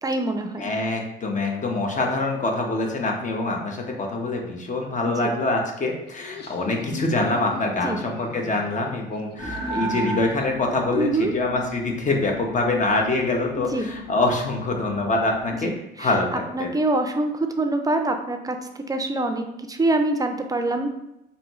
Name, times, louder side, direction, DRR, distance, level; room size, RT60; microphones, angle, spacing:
voice 1, 0.0-0.7 5.0-5.3 7.8-8.0 11.0-11.3 13.6-13.9 15.5-20.9, right 2 dB, 20° right, 6 dB, 0.5 m, -25 dB
voice 2, 0.6-15.7 16.0-16.7, left 2 dB, 40° left, 1 dB, 0.9 m, -25 dB
Laughter, 6.1-10.7, left 4 dB, 60° left, 0.5 m, -39 dB
sound 1, 9.4-15.7, equal, 25° left, 1.5 m, -35 dB
4.9 x 2.7 x 3.0 m, 0.89 s
cardioid pair, 90°, 20 cm